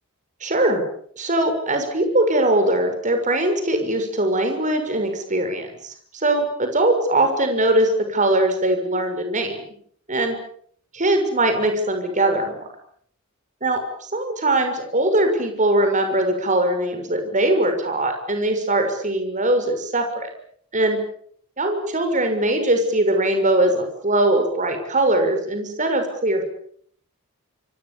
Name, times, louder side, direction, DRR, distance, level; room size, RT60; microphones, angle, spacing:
voice 1, 0.4-0.8 1.2-9.6 10.1-10.4 10.9-12.7 13.6-20.3 20.7-21.0 21.6-26.4, right 1 dB, 35° right, 6 dB, 6.3 m, -21 dB
27.5 x 25.5 x 7.1 m, 0.62 s
head